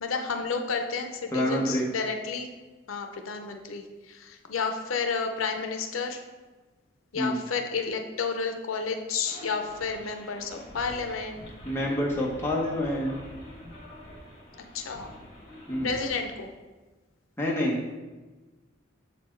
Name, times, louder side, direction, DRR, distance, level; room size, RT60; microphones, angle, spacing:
voice 1, 0.0-2.5 2.9-6.2 7.1-11.4 14.7-15.1 15.8-16.5, left 5 dB, 90° left, 5 dB, 0.6 m, -31 dB
voice 2, 1.3-1.9 7.1-7.4 11.6-13.2 15.7-15.9 17.4-18.0, left 1 dB, 10° left, -3 dB, 1.0 m, -27 dB
sound 1, 9.2-16.2, equal, 25° left, 1.8 m, -46 dB
7.2 x 4.2 x 4.4 m, 1.2 s
head